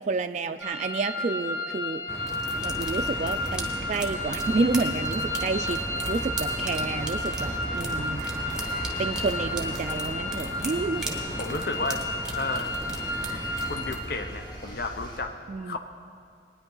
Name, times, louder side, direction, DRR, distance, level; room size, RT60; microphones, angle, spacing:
voice 1, 0.0-2.0 2.6-5.8 6.1-8.2 9.0-11.1 15.5-15.8, right 3 dB, 40° right, 7 dB, 0.3 m, -29 dB
sound 1, 0.6-13.8, left 2 dB, 85° left, 2.9 m, -32 dB
sound 2, 2.1-14.0, right 1 dB, 5° right, 1.2 m, -36 dB
sound 3, 2.5-15.2, equal, 25° left, 2.7 m, -39 dB
voice 2, 11.4-12.0 12.3-12.8 13.7-15.8, left 3 dB, 55° left, 6 dB, 0.6 m, -32 dB
20.5 x 9.6 x 3.8 m, 2.3 s
head